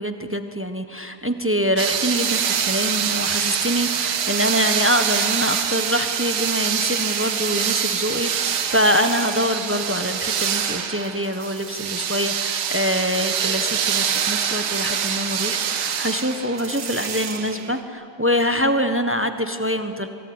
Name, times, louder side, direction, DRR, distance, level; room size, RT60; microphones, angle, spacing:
voice 1, 0.0-20.1, equal, 10° right, 8 dB, 0.7 m, -24 dB
sound 1, 1.8-17.8, right 8 dB, 75° right, 2.1 m, -25 dB
25.5 x 23.0 x 9.6 m, 2.6 s
omnidirectional pair, 2.3 m